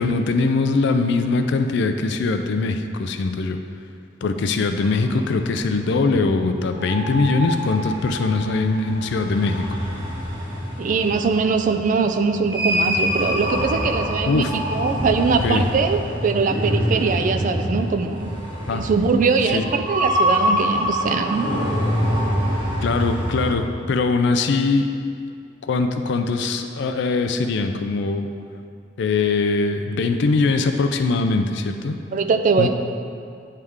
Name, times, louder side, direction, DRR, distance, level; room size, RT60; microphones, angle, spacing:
voice 1, 0.0-3.6 4.2-9.8 14.3-14.5 15.4-15.6 18.7-18.8 19.5-19.6 22.8-24.9 25.6-28.3 29.0-32.0 32.6-32.7, left 3 dB, 65° left, 7 dB, 0.4 m, -21 dB
sound 1, 4.8-23.5, equal, 25° right, 1.2 m, -26 dB
voice 2, 10.8-18.3 18.7-21.5 32.1-32.7, right 4 dB, 45° right, 7 dB, 0.3 m, -21 dB
9.3 x 3.3 x 3.6 m, 2.3 s
head